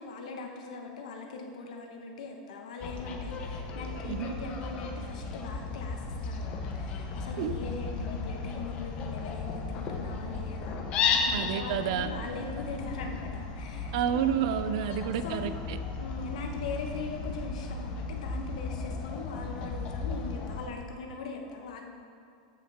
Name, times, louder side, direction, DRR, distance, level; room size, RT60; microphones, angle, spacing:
voice 1, 0.0-14.2 14.8-15.4 16.0-21.8, left 4 dB, 85° left, 2 dB, 1.2 m, -41 dB
Fowl, 2.8-20.7, left 4 dB, 30° left, 0.8 m, -35 dB
voice 2, 11.3-12.1 13.9-15.8, right 9 dB, 55° right, 11 dB, 0.5 m, -30 dB
13.5 x 5.7 x 3.6 m, 2.4 s
supercardioid pair, 165°, 4 cm